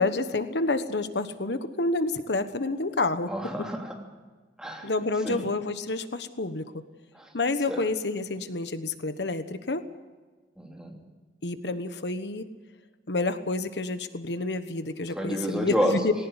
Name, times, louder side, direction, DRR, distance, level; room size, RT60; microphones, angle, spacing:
voice 1, 0.0-3.3 4.8-6.6 7.3-9.8 11.4-12.4 13.1-16.1, left 3 dB, 80° left, 10 dB, 1.2 m, -29 dB
voice 2, 3.3-4.0 4.6-4.9 5.2-5.4 7.1-7.3 7.7-7.8 10.6-11.0 15.1-16.0, equal, 5° right, 0 dB, 3.0 m, -29 dB
19.0 x 18.5 x 8.1 m, 1.4 s
head